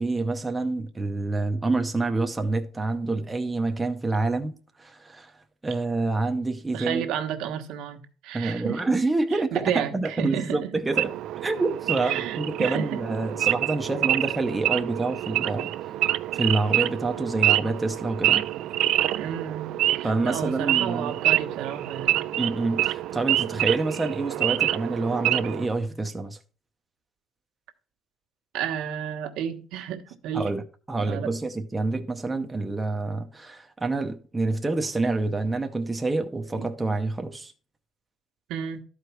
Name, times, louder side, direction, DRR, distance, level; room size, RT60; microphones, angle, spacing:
voice 1, 0.0-7.0 8.3-11.1 11.4-15.7 16.3-18.5 20.0-21.1 22.4-26.4 30.3-30.6 30.9-37.5, right 3 dB, 10° right, 0.7 m, -27 dB
voice 2, 6.7-8.8 9.3-10.8 12.0-13.0 19.1-22.2 28.5-30.5 31.0-31.3 36.6-36.7 38.5-38.8, right 9 dB, 80° right, 1.3 m, -32 dB
Wild animals / Idling, 10.9-25.7, right 13 dB, 60° right, 0.3 m, -26 dB
12.5 x 4.8 x 4.6 m
cardioid pair, 175°, 0 cm